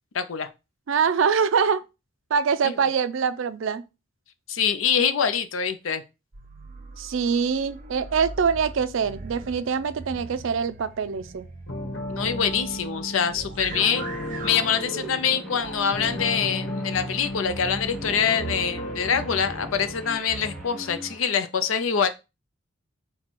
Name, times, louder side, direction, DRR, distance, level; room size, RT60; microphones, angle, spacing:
voice 1, 0.1-0.5 2.6-2.7 4.5-6.0 12.1-14.0 14.4-22.1, left 7 dB, 80° left, 0.5 m, -25 dB
voice 2, 0.9-1.8 2.3-3.8 7.0-11.5, right 6 dB, 75° right, 0.4 m, -24 dB
sound 1, 6.3-20.7, right 3 dB, 40° right, 0.7 m, -40 dB
sound 2, 11.7-20.2, left 1 dB, 60° left, 1.1 m, -35 dB
Guitar, 13.8-21.3, left 1 dB, ahead, 0.9 m, -43 dB
4.4 x 2.2 x 4.1 m
head